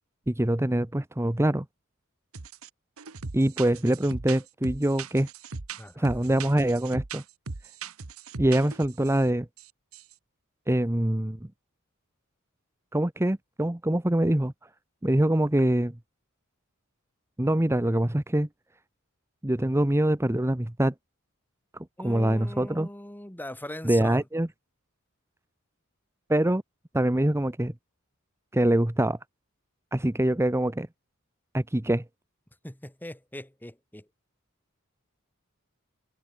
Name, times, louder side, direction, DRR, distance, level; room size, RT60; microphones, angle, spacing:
voice 1, 0.3-1.6 3.3-5.3 6.0-7.2 8.4-9.5 10.7-11.4 12.9-14.5 15.0-15.9 17.4-18.5 19.4-20.9 22.0-22.9 23.8-24.5 26.3-26.6 26.9-27.7 28.5-29.2 29.9-30.9 31.5-32.0, right 1 dB, 10° right, 0.8 m, -24 dB
sound 1, 2.3-2.7 3.0-9.2 9.6-10.1, right 4 dB, 80° right, 1.4 m, -39 dB
voice 2, 5.8-6.2 22.0-24.2 32.6-34.1, left 1 dB, 10° left, 1.8 m, -40 dB
head